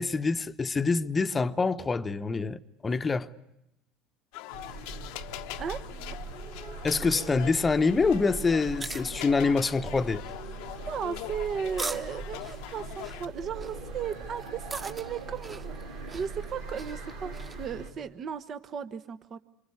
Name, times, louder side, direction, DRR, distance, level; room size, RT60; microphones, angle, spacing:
voice 1, 0.0-3.3 6.8-10.2, left 4 dB, 25° left, 0.9 m, -26 dB
sound 1, 4.3-13.3, left 15 dB, 70° left, 0.9 m, -43 dB
sound 2, 4.5-17.9, right 3 dB, 85° right, 3.5 m, -41 dB
sound 3, 8.6-17.7, right 3 dB, 25° right, 1.5 m, -43 dB
voice 2, 10.8-19.4, right 7 dB, 40° right, 1.1 m, -36 dB
26.5 x 25.0 x 8.4 m
hypercardioid pair, 75°, 0 cm